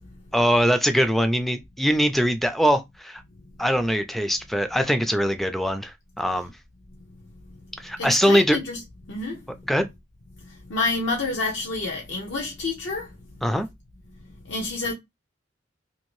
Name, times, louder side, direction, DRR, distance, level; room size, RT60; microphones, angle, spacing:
voice 1, 0.3-3.2 3.6-5.9 6.2-6.5 7.8-8.6 9.7-9.9 13.4-13.7, equal, ahead, 0.3 m, -22 dB
voice 2, 8.0-8.8 9.1-9.4 10.7-13.1 14.5-14.9, left 3 dB, 70° left, 0.7 m, -28 dB
2.7 x 2.5 x 3.0 m
head